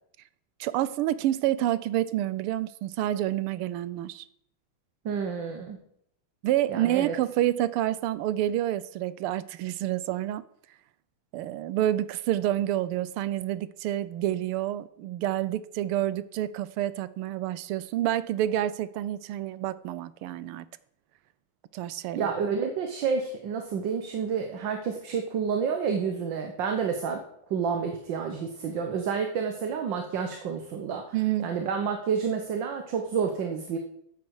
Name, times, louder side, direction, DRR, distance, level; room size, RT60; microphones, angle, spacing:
voice 1, 0.6-4.2 6.4-10.4 11.3-20.7 21.7-22.3 31.1-31.5, right 13 dB, 85° right, 1.6 m, -28 dB
voice 2, 5.1-5.8 6.7-7.2 22.2-27.2 27.5-33.8, right 6 dB, 60° right, 1.7 m, -29 dB
14.0 x 9.5 x 4.8 m
omnidirectional pair, 2.4 m